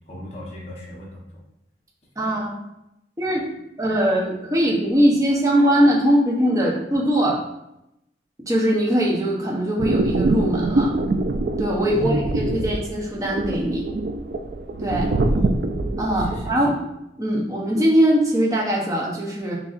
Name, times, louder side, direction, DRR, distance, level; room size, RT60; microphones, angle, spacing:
voice 1, 0.1-1.4 11.9-12.6 14.8-15.4 16.1-16.6, equal, 35° left, -4 dB, 1.0 m, -33 dB
voice 2, 2.2-2.6 3.2-3.5 3.8-7.4 8.5-10.9 11.6-13.9 14.8-15.1 16.0-16.8 17.2-19.6, equal, 20° right, -4 dB, 0.8 m, -21 dB
sound 1, 9.8-16.5, right 2 dB, 55° right, 0.3 m, -24 dB
6.2 x 2.8 x 2.5 m, 0.84 s
head